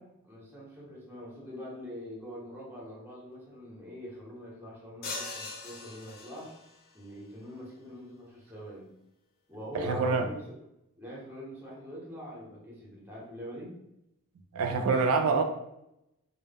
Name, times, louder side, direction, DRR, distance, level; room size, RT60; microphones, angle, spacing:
voice 1, 0.2-6.6 6.9-8.9 9.5-10.6 11.0-13.7, equal, 10° right, 0.7 m, -44 dB
sound 1, 5.0-6.8, left 3 dB, 45° left, 0.4 m, -40 dB
voice 2, 9.7-10.3 14.5-15.4, right 4 dB, 80° right, 0.4 m, -26 dB
2.1 x 2.0 x 3.3 m
head